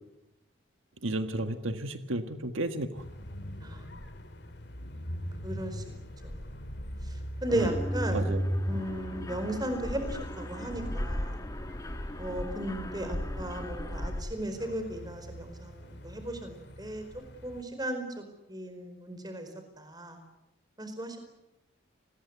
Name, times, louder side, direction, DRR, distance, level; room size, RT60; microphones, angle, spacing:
voice 1, 1.0-3.0 7.5-7.7 8.1-8.4 8.7-8.9, right 1 dB, 80° right, 8 dB, 1.6 m, -33 dB
sound 1, 2.9-17.6, equal, 55° left, 2.7 m, -40 dB
voice 2, 3.6-3.9 5.4-6.0 6.2-6.4 7.4-8.4 8.6-11.4 12.2-17.0 17.4-18.2 18.5-19.5 19.8-20.2 20.8-21.2, right 1 dB, 20° right, 7 dB, 4.7 m, -35 dB
Mechanisms, 7.5-14.2, equal, 15° left, 1.8 m, -36 dB
29.5 x 21.0 x 8.2 m, 0.93 s
head